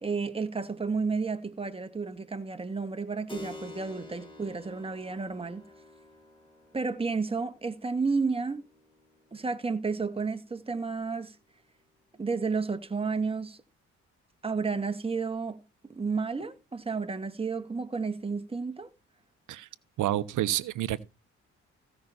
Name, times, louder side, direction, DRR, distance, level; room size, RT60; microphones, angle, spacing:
voice 1, 0.0-5.6 6.7-8.7 9.3-11.4 12.2-13.6 14.4-18.9, right 4 dB, 20° right, 1.7 m, -32 dB
Keyboard (musical), 3.3-11.5, left 2 dB, 15° left, 5.6 m, -50 dB
voice 2, 20.0-21.0, right 13 dB, 80° right, 1.1 m, -29 dB
16.0 x 6.0 x 4.2 m
cardioid pair, 90°, 30 cm